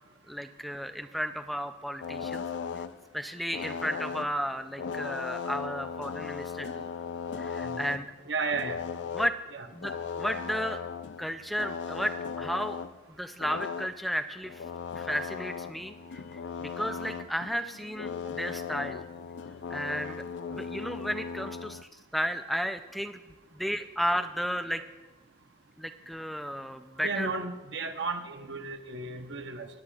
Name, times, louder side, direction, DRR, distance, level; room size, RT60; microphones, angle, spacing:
voice 1, 0.3-2.4 3.1-6.9 7.4-8.1 9.1-9.4 9.7-9.9 10.2-10.8 11.2-12.8 13.2-14.6 15.0-19.0 19.7-20.2 20.5-23.2 23.5-24.8 25.8-27.3, equal, ahead, 8 dB, 0.4 m, -33 dB
sound 1, 2.0-3.1 3.3-8.1 8.3-9.4 9.7-13.0 13.4-13.9 14.4-21.8, left 6 dB, 70° left, 0.4 m, -37 dB
voice 2, 8.3-8.8 9.5-9.7 27.0-29.7, right 4 dB, 75° right, 6 dB, 0.9 m, -33 dB
20.0 x 10.0 x 2.4 m, 1.2 s
head